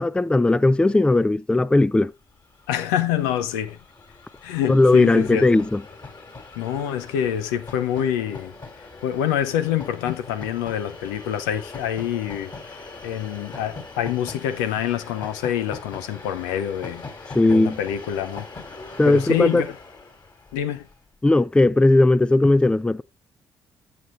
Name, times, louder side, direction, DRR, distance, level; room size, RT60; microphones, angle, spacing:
voice 1, 0.0-2.1 4.7-5.8 17.3-17.8 19.0-19.6 21.2-23.0, left 2 dB, 10° left, 0.4 m, -17 dB
Train, 2.3-2.4 2.6-21.0, left 3 dB, 40° left, 3.3 m, -41 dB
voice 2, 2.7-3.8 4.4-5.6 6.6-8.5 9.0-18.5 19.1-19.8 20.5-20.9, left 10 dB, 85° left, 0.7 m, -26 dB
14.5 x 6.6 x 2.5 m
hypercardioid pair, 45°, 10 cm